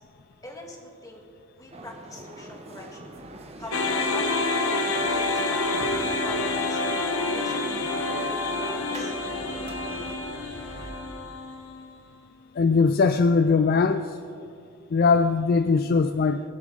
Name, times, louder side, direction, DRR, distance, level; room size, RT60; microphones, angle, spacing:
voice 1, 0.4-1.2 1.6-4.5 5.1-6.8 7.1-7.7 8.1-9.1, left 1 dB, 15° left, 1 dB, 1.6 m, -42 dB
sound 1, 1.7-10.2, right 1 dB, 30° right, 0.9 m, -41 dB
sound 2, 3.1-10.9, equal, 60° right, 4.3 m, -49 dB
sound 3, 3.7-12.0, left 3 dB, 75° left, 1.1 m, -28 dB
voice 2, 12.6-14.2 14.9-16.4, left 4 dB, 45° left, 9 dB, 0.3 m, -20 dB
22.5 x 10.5 x 3.8 m, 2.5 s
head